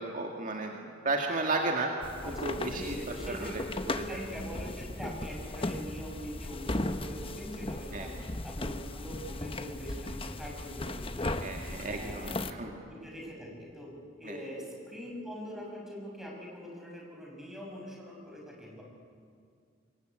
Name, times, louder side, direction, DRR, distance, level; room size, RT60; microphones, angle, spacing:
voice 1, 0.0-1.9 2.3-3.0 3.3-3.9 7.9-8.1 11.3-12.7 14.3-14.4, right 3 dB, 40° right, 2 dB, 2.0 m, -34 dB
sound 1, 2.0-12.5, left 2 dB, 30° left, 1.1 m, -37 dB
voice 2, 2.2-3.5 3.9-8.1 8.4-11.3 11.6-13.9 14.2-18.8, equal, ahead, -2 dB, 6.6 m, -43 dB
26.0 x 22.5 x 9.3 m, 2.2 s
head